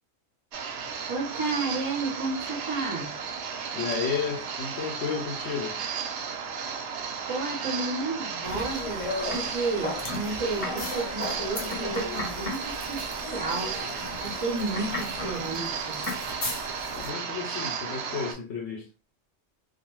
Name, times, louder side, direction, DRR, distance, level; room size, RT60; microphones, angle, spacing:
sound 1, 0.5-18.3, right 6 dB, 75° right, 0.8 m, -34 dB
voice 1, 1.1-3.2 7.3-13.0 13.3-13.8 14.2-16.1, right 3 dB, 30° right, 0.7 m, -32 dB
voice 2, 3.7-5.8 16.9-18.9, left 6 dB, 75° left, 0.9 m, -32 dB
sound 2, 8.4-17.1, left 2 dB, 35° left, 0.7 m, -35 dB
2.4 x 2.2 x 3.0 m
omnidirectional pair, 1.2 m